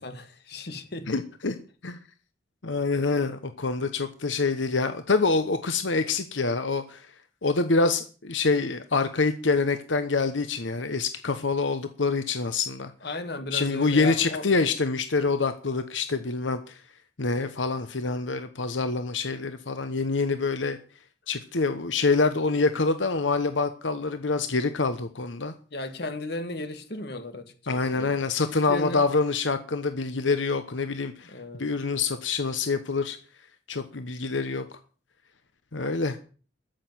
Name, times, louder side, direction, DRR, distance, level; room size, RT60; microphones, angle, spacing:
voice 1, 0.0-1.1 13.0-14.5 25.7-28.1 28.5-29.1 31.3-31.6, left 2 dB, 60° left, 1.9 m, -35 dB
voice 2, 1.1-1.6 1.8-2.0 2.6-7.1 7.4-12.9 13.5-16.8 17.2-20.8 21.3-25.5 27.7-33.2 33.7-34.6 35.7-36.2, left 4 dB, 90° left, 1.1 m, -26 dB
14.0 x 6.7 x 9.3 m
head